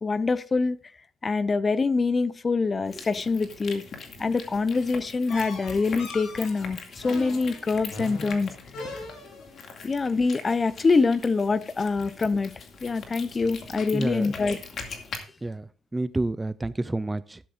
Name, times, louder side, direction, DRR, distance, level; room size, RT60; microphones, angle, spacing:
voice 1, 0.0-0.8 1.2-3.8 4.2-8.5 9.8-12.5 12.8-14.6, left 4 dB, 30° left, 16 dB, 0.7 m, -25 dB
sound 1, 2.9-15.2, left 5 dB, 60° left, 2.3 m, -42 dB
sound 2, 5.3-9.6, left 2 dB, 80° left, 4.1 m, -40 dB
voice 2, 13.9-14.3 15.4-17.4, right 2 dB, 15° right, 17 dB, 0.4 m, -29 dB
13.5 x 11.0 x 2.6 m, 0.39 s
cardioid pair, 90°, 0 cm